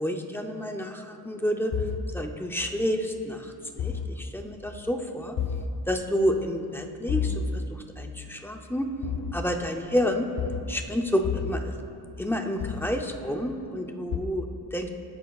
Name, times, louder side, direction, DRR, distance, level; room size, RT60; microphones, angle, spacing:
voice 1, 0.0-1.7 2.1-5.4 5.9-8.9 9.3-10.3 10.7-11.8 12.2-14.9, equal, 5° left, 4 dB, 0.5 m, -29 dB
sound 1, 1.7-2.0 3.8-4.1 5.4-5.7 7.1-7.4 9.0-9.3 10.4-10.6 11.2-11.5 12.6-12.9 14.1-14.2, left 8 dB, 65° left, 0.7 m, -29 dB
20.0 x 10.0 x 2.3 m, 2.8 s
wide cardioid pair, 170°, 40 cm